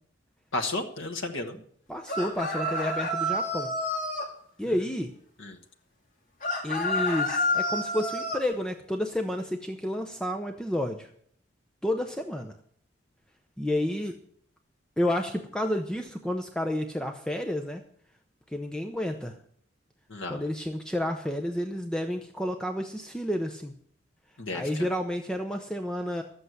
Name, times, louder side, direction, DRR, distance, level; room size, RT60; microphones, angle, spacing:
voice 1, 0.5-1.6 5.4-5.6 20.1-20.4 24.4-24.9, left 2 dB, 90° left, 3 dB, 1.3 m, -33 dB
voice 2, 1.9-3.7 4.6-5.1 6.6-11.1 11.8-12.5 13.6-14.1 15.0-17.8 18.5-19.4 20.3-23.7 24.5-26.2, left 1 dB, 5° left, 4 dB, 0.7 m, -30 dB
sound 1, 2.1-4.3 6.4-8.4, left 1 dB, 40° left, 2.3 m, -29 dB
12.0 x 8.1 x 8.0 m, 0.63 s
head